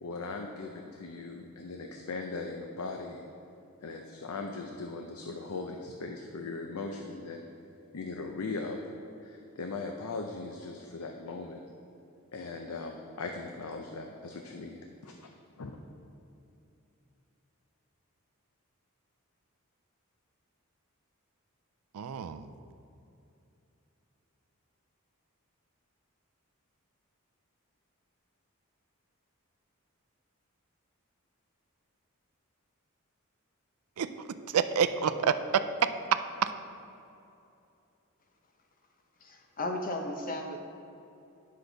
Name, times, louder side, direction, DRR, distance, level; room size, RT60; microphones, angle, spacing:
voice 1, 0.0-3.2 3.8-7.4 7.9-8.8 9.2-11.6 12.3-15.3 15.6-15.8, left 3 dB, 80° left, 3 dB, 0.6 m, -39 dB
voice 2, 21.9-22.5 34.0-34.1 34.5-36.5, right 7 dB, 85° right, 11 dB, 0.4 m, -28 dB
voice 3, 39.2-40.6, left 1 dB, 40° left, 4 dB, 0.7 m, -35 dB
9.7 x 6.5 x 3.9 m, 2.8 s
head